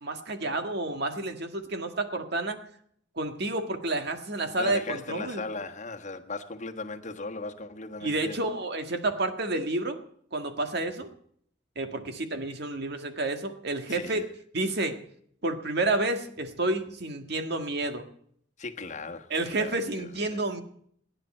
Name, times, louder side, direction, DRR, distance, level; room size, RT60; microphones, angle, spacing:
voice 1, 0.0-2.6 3.1-5.4 8.0-10.0 10.3-11.1 11.7-14.2 14.5-15.0 15.4-18.0 19.3-20.6, right 2 dB, 60° right, 1.8 m, -30 dB
voice 2, 4.6-8.4 13.9-14.2 18.6-20.4, left 3 dB, 40° left, 1.4 m, -37 dB
28.5 x 10.0 x 4.4 m
head